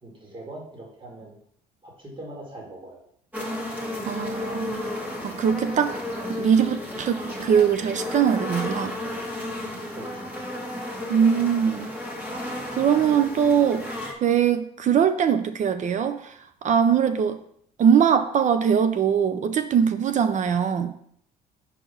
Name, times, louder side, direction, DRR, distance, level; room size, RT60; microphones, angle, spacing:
voice 1, 0.0-1.4 1.8-3.0 9.6-10.3, right 1 dB, 30° right, -2 dB, 2.3 m, -42 dB
sound 1, 3.3-14.1, left 1 dB, 10° right, 1.6 m, -33 dB
voice 2, 4.0-4.9 5.2-6.0 6.3-9.0 11.1-12.0 12.8-13.9 14.2-16.4 16.6-17.4 17.8-21.0, right 7 dB, 45° right, 10 dB, 0.5 m, -21 dB
5.6 x 4.6 x 5.6 m, 0.67 s
cardioid pair, 110°, 17 cm